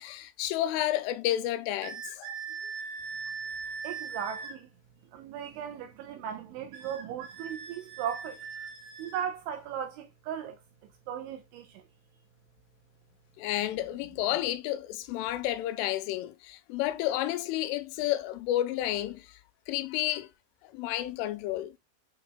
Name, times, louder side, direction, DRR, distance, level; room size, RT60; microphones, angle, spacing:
voice 1, 0.0-2.3 13.4-19.4 19.7-20.3 20.6-21.7, left 13 dB, 90° left, 3.3 m, -31 dB
sound 1, 1.8-4.6 6.7-9.3, right 5 dB, 60° right, 2.4 m, -40 dB
voice 2, 3.8-4.7 5.1-8.5 9.0-10.6 11.1-11.8, right 9 dB, 80° right, 3.2 m, -37 dB
7.8 x 5.9 x 2.2 m
omnidirectional pair, 5.5 m